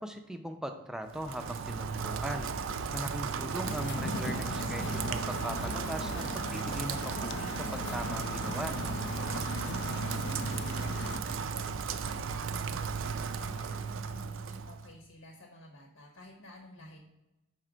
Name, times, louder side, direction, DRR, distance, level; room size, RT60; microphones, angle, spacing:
voice 1, 0.0-2.5 2.9-8.7, equal, 5° right, 5 dB, 0.4 m, -39 dB
Rain, 1.1-14.9, right 6 dB, 70° right, 0.4 m, -35 dB
voice 2, 2.7-3.2 9.2-17.0, left 1 dB, 85° left, 2 dB, 1.0 m, -52 dB
sound 1, 3.6-11.2, left 4 dB, 55° left, 0.4 m, -39 dB
5.8 x 4.4 x 4.9 m, 0.96 s
head